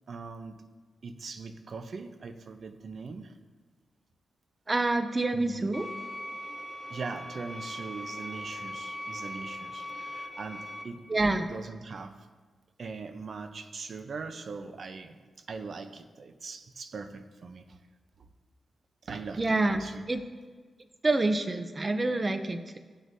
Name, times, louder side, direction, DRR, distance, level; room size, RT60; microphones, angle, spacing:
voice 1, 0.1-0.7 1.0-3.4 5.3-5.7 6.9-11.1 11.4-12.3 12.8-17.8 18.2-18.3 19.0-20.0, right 4 dB, 60° right, 8 dB, 0.7 m, -41 dB
voice 2, 4.7-5.9 11.1-11.5 19.4-20.2 21.0-22.8, right 2 dB, 30° right, 8 dB, 0.6 m, -27 dB
sound 1, 5.7-10.8, left 1 dB, 30° left, 1.2 m, -40 dB
18.0 x 6.1 x 2.7 m, 1.5 s
cardioid pair, 80°, 0 cm